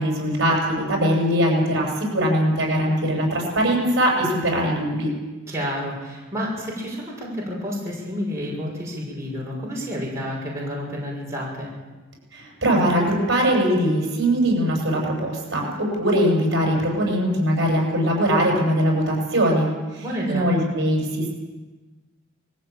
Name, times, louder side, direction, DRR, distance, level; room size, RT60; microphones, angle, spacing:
voice 1, 0.0-5.1 12.3-21.3, equal, 60° right, -1 dB, 7.7 m, -21 dB
voice 2, 5.5-11.7 20.0-20.5, equal, 15° right, -5 dB, 6.2 m, -30 dB
22.0 x 15.5 x 9.0 m, 1.2 s
head